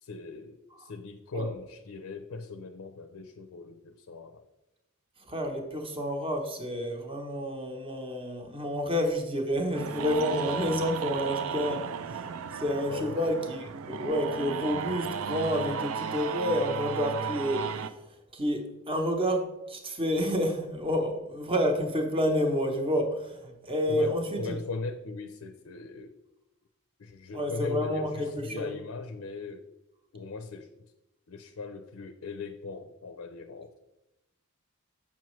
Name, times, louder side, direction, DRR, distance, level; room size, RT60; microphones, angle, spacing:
voice 1, 0.0-4.4 12.9-13.3 23.9-26.1 27.0-29.7 30.1-30.7 31.3-33.8, left 3 dB, 75° left, 7 dB, 0.5 m, -39 dB
voice 2, 5.2-17.9 18.3-24.6 27.3-28.7, equal, 25° right, 3 dB, 0.8 m, -29 dB
sound 1, 9.7-17.9, right 7 dB, 70° right, 0.4 m, -34 dB
7.2 x 5.9 x 3.1 m, 0.97 s
head